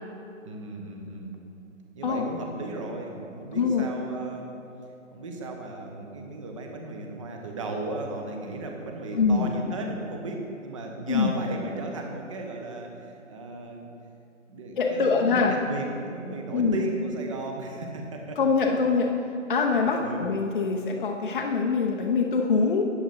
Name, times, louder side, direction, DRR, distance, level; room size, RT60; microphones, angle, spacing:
voice 1, 0.4-1.3 1.9-4.5 5.1-13.9 14.5-18.4 19.8-20.3, right 2 dB, 25° right, 2 dB, 1.0 m, -36 dB
voice 2, 9.1-9.5 11.1-11.3 14.8-15.5 16.5-16.8 18.4-19.1 19.5-22.8, left 5 dB, 40° left, 1 dB, 0.7 m, -24 dB
10.0 x 9.2 x 4.2 m, 2.8 s
figure-of-eight pair, 145°, 40 cm